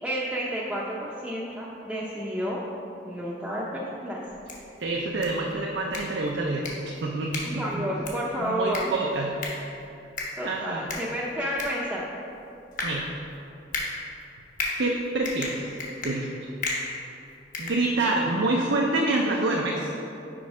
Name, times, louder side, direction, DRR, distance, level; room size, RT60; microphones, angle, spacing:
voice 1, 0.0-2.6 3.0-4.2 7.4-8.9 10.4-12.0, equal, 5° right, -7 dB, 0.6 m, -30 dB
sound 1, 4.2-18.4, left 3 dB, 45° left, 1.2 m, -37 dB
voice 2, 4.8-7.9 8.4-9.4 10.4-10.9 12.8-13.1 14.8-15.7 16.0-16.5 17.6-19.9, right 2 dB, 75° right, -1 dB, 0.6 m, -27 dB
6.2 x 5.2 x 4.9 m, 2.8 s
head